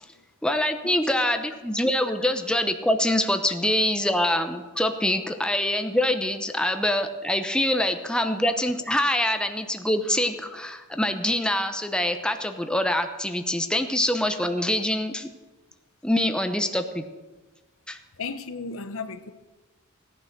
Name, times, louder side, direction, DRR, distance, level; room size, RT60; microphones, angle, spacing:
voice 1, 0.4-15.3 16.0-17.0 17.9-18.0, left 1 dB, 5° left, 0.8 m, -25 dB
voice 2, 18.2-19.3, left 4 dB, 65° left, 0.9 m, -35 dB
17.0 x 9.8 x 6.7 m
head